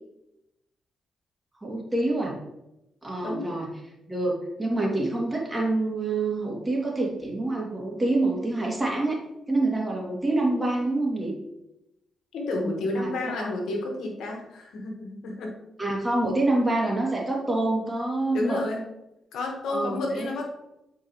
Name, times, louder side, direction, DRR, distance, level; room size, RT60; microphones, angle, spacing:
voice 1, 1.6-2.3 3.0-3.7 4.1-9.2 9.5-11.4 12.9-13.5 15.8-18.6 19.7-20.3, right 2 dB, 15° right, -2 dB, 2.7 m, -26 dB
voice 2, 12.3-15.5 18.3-18.8 19.3-20.5, left 2 dB, 80° left, 1 dB, 1.6 m, -30 dB
8.5 x 4.6 x 3.2 m, 0.88 s
supercardioid pair, 60°, 0 cm